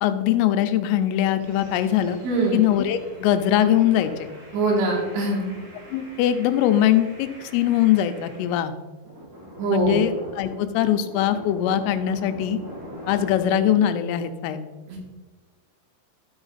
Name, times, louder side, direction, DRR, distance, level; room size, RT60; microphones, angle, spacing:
voice 1, 0.0-2.2 2.5-4.3 5.9-8.7 9.7-12.6 13.1-14.7, left 11 dB, 85° left, 9 dB, 3.2 m, -21 dB
sound 1, 1.4-8.6 9.0-13.8, equal, 45° right, 1.8 m, -43 dB
voice 2, 2.2-2.6 4.5-5.5 9.6-10.0 14.9-15.0, right 3 dB, 70° right, -2 dB, 4.5 m, -23 dB
12.5 x 5.9 x 4.0 m, 1.3 s
omnidirectional pair, 5.8 m